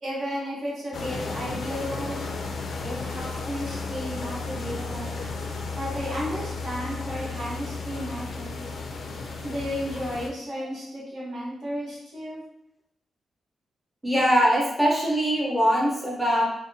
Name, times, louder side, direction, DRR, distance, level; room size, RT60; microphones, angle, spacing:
voice 1, 0.0-2.3 2.8-5.1 5.7-8.7 9.4-12.4, equal, 55° right, -7 dB, 1.2 m, -33 dB
sound 1, 0.9-10.3, left 3 dB, 60° left, 0.3 m, -34 dB
voice 2, 14.0-16.4, equal, 5° right, -4 dB, 0.7 m, -22 dB
2.6 x 2.2 x 2.6 m, 0.79 s
wide cardioid pair, 140°, 0 cm